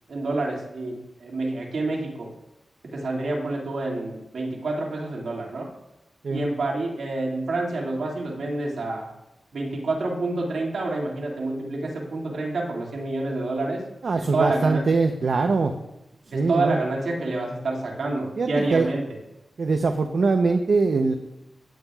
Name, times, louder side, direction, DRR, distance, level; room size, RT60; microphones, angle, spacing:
voice 1, 0.1-2.3 2.9-5.7 6.3-9.1 9.5-13.8 14.2-14.8 16.3-19.0, right 2 dB, 90° right, -2 dB, 2.2 m, -28 dB
voice 2, 14.0-15.7 16.3-16.8 18.4-18.9 19.6-21.1, right 4 dB, 70° right, 5 dB, 0.7 m, -22 dB
15.5 x 9.0 x 2.4 m, 0.90 s
wide cardioid pair, 90°, 0 cm